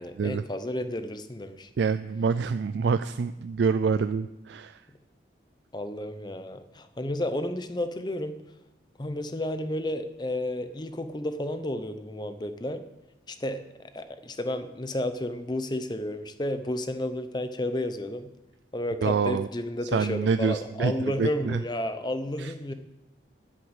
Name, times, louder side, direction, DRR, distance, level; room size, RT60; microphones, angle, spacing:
voice 1, 0.0-1.7 5.7-8.4 9.0-12.8 13.3-13.6 13.9-18.3 18.7-22.7, left 1 dB, 25° left, 10 dB, 0.7 m, -32 dB
voice 2, 1.8-4.8 19.0-19.5 19.9-21.6 22.4-22.5, right 5 dB, 75° right, 12 dB, 0.3 m, -26 dB
9.6 x 7.6 x 8.0 m, 0.99 s
head